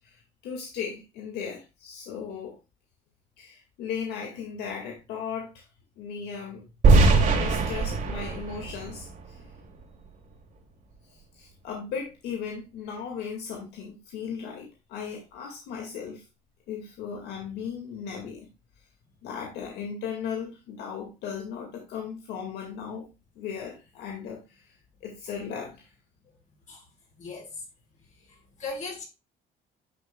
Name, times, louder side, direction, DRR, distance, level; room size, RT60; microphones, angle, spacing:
voice 1, 0.0-2.5 3.4-5.6 6.0-6.6 7.3-9.4 11.3-16.2 16.7-18.5 19.2-23.1 23.4-24.6 25.0-25.9, left 6 dB, 85° left, 2.1 m, -37 dB
sound 1, 6.8-9.8, right 3 dB, 50° right, 2.7 m, -21 dB
voice 2, 27.2-27.6 28.3-29.0, left 3 dB, 45° left, 5.5 m, -38 dB
10.5 x 6.8 x 2.3 m
cardioid pair, 110°, 17 cm